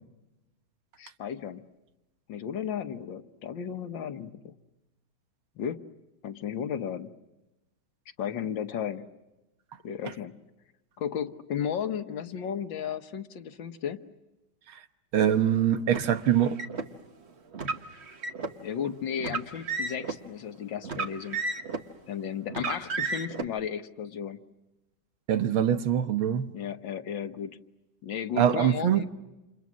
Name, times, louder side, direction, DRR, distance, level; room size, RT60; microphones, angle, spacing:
voice 1, 1.0-1.6 2.3-4.6 5.6-5.9 6.2-7.1 8.2-9.1 9.8-10.4 11.0-14.0 18.6-21.4 22.1-24.4 26.5-27.5 28.0-29.1, left 8 dB, 70° left, 1.8 m, -34 dB
voice 2, 15.1-16.6 25.3-26.5 28.4-29.1, right 9 dB, 80° right, 1.9 m, -23 dB
Car, 15.9-16.9 17.5-18.6 19.2-20.2 20.8-21.9 22.5-23.4, right 4 dB, 35° right, 1.3 m, -33 dB
29.5 x 28.0 x 6.2 m
omnidirectional pair, 2.2 m